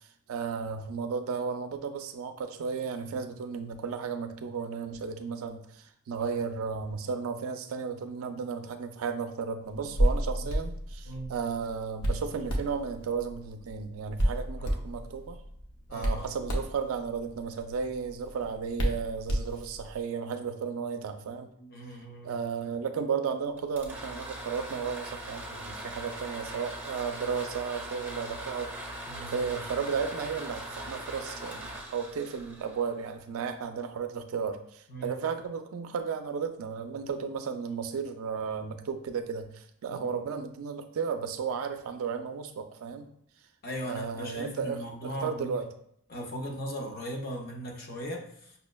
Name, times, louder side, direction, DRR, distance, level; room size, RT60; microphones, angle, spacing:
voice 1, 0.3-15.4 15.9-21.5 22.2-28.7 29.2-43.1 43.8-45.7, right 6 dB, 65° right, 8 dB, 0.3 m, -34 dB
Hands, 9.7-20.0, equal, 85° left, 0.7 m, -32 dB
voice 2, 15.9-16.3 21.6-22.4 29.1-29.4 34.9-35.2 39.9-40.2 43.6-45.6 46.1-48.5, equal, 45° left, -1 dB, 0.6 m, -38 dB
sound 1, 23.6-33.4, right 1 dB, 10° right, 0.8 m, -41 dB
5.4 x 2.1 x 2.2 m, 0.68 s
head